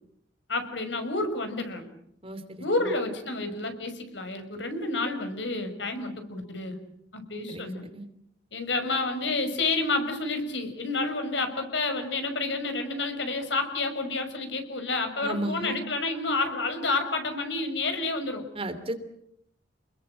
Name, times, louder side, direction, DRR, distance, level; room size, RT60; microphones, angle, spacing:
voice 1, 0.5-1.8 2.6-6.8 7.1-7.8 8.5-18.5, left 3 dB, 70° left, 7 dB, 6.0 m, -29 dB
voice 2, 2.2-2.6 7.5-8.0 15.2-15.8 18.6-19.0, right 1 dB, 30° right, 9 dB, 2.9 m, -34 dB
30.0 x 21.5 x 7.8 m, 0.73 s
head